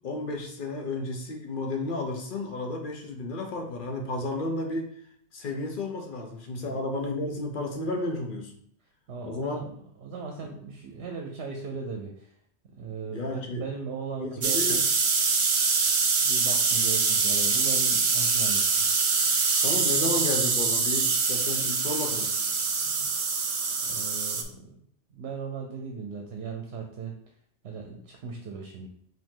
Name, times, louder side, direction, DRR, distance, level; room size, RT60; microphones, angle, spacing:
voice 1, 0.0-4.9 5.3-8.6 9.3-9.6 13.1-13.6 14.2-14.8 19.6-22.3, left 2 dB, 50° left, 2 dB, 0.9 m, -32 dB
voice 2, 9.1-9.7 10.0-12.3 12.8-14.8 16.2-18.9 22.8-23.1 23.8-24.8 25.1-27.1 27.6-28.9, right 5 dB, 70° right, 2 dB, 0.9 m, -37 dB
sound 1, 14.4-24.4, right 4 dB, 55° right, 0.3 m, -24 dB
5.0 x 2.9 x 3.7 m, 0.64 s
omnidirectional pair, 1.2 m